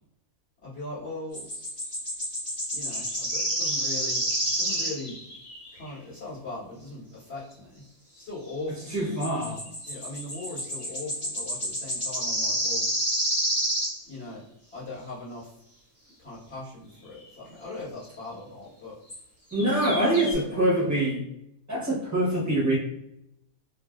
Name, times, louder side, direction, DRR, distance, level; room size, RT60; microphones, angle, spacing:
voice 1, 0.6-1.5 2.7-4.2 4.5-5.2 5.7-7.8 8.1-9.1 9.8-12.8 14.0-14.4 14.7-15.6 16.2-19.0 19.6-21.0, left 2 dB, 45° left, -9 dB, 1.5 m, -40 dB
sound 1, 1.3-5.9 9.2-14.0 17.2-17.3 19.1-19.2 19.5-20.3, right 1 dB, 25° left, 1.3 m, -29 dB
voice 2, 8.9-9.6 19.5-21.2 21.7-22.8, right 1 dB, 15° right, -5 dB, 1.0 m, -24 dB
2.9 x 2.6 x 2.3 m, 0.79 s
omnidirectional pair, 1.6 m